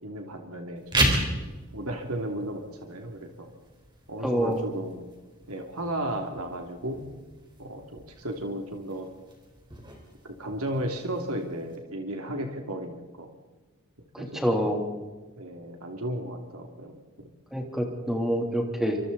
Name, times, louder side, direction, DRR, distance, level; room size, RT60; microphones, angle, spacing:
voice 1, 0.0-1.2 1.7-3.5 4.1-5.1 5.5-7.1 7.6-9.1 10.2-13.3 14.2-14.7 15.4-17.3, right 1 dB, 85° right, 3 dB, 2.9 m, -34 dB
sound 1, 0.8-11.8, right 1 dB, 20° right, 4.0 m, -35 dB
voice 2, 4.2-4.6 14.1-14.8 17.5-19.0, equal, ahead, 1 dB, 3.2 m, -27 dB
28.0 x 25.5 x 4.2 m, 1.3 s
head